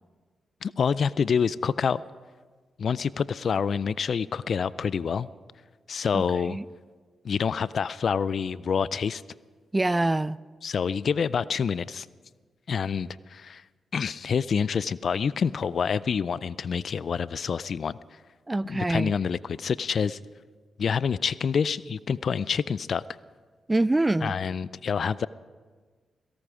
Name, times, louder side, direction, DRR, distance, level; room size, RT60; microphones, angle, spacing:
voice 1, 0.6-2.0 2.8-5.3 5.9-6.6 7.2-9.2 10.6-12.1 12.7-13.6 13.9-18.0 18.7-20.2 20.8-23.0 24.2-25.3, left 6 dB, 65° left, 19 dB, 0.4 m, -27 dB
voice 2, 6.1-6.6 9.7-10.4 18.5-19.1 23.7-24.4, right 2 dB, 20° right, 19 dB, 0.4 m, -25 dB
17.5 x 16.5 x 5.0 m, 1.5 s
supercardioid pair, 50°, 0 cm